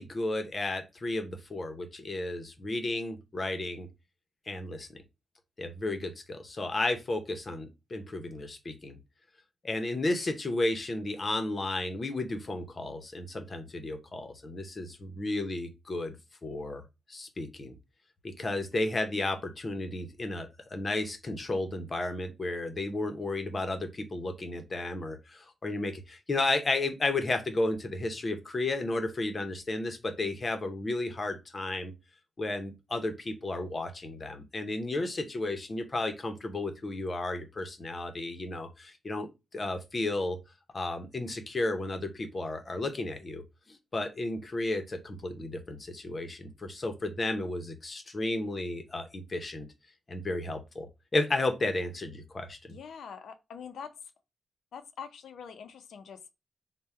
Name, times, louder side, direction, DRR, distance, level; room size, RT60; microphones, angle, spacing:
voice 1, 0.0-3.9 4.5-5.0 5.6-9.0 9.6-16.2 16.4-16.8 17.1-17.8 18.2-31.9 32.4-39.3 39.5-40.4 40.7-49.7 50.1-50.9 51.1-52.8, left 2 dB, 30° left, 0.7 m, -33 dB
voice 2, 52.7-53.9 54.7-56.3, left 7 dB, 90° left, 0.5 m, -44 dB
3.5 x 2.2 x 4.2 m
wide cardioid pair, 150°, 0 cm